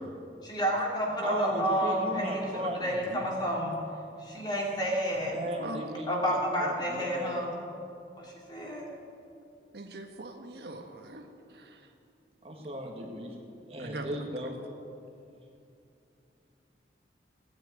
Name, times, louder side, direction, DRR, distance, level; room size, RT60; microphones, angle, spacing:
voice 1, 0.4-3.8 4.2-5.3 6.1-7.5 8.2-8.9, equal, 25° left, -3 dB, 3.0 m, -30 dB
voice 2, 1.2-3.0 5.3-7.4 12.4-13.3 13.7-14.6, equal, 35° right, 1 dB, 1.6 m, -36 dB
voice 3, 5.6-5.9 9.7-11.8 13.8-14.1, right 2 dB, 70° right, 4 dB, 1.3 m, -42 dB
16.5 x 9.5 x 9.3 m, 2.6 s
head